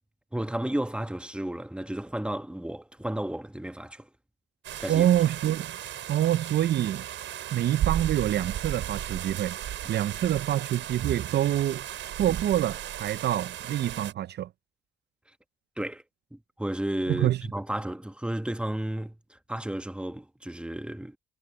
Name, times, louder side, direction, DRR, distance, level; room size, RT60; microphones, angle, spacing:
voice 1, 0.3-4.1 4.8-5.1 15.8-16.0 16.3-21.2, right 1 dB, 5° right, 1.6 m, -33 dB
sound 1, 4.6-14.1, right 11 dB, 75° right, 6.3 m, -35 dB
voice 2, 4.9-5.8 6.1-7.0 7.5-9.6 9.9-14.5 17.1-17.4, right 12 dB, 60° right, 0.5 m, -26 dB
cardioid pair, 90°, 20 cm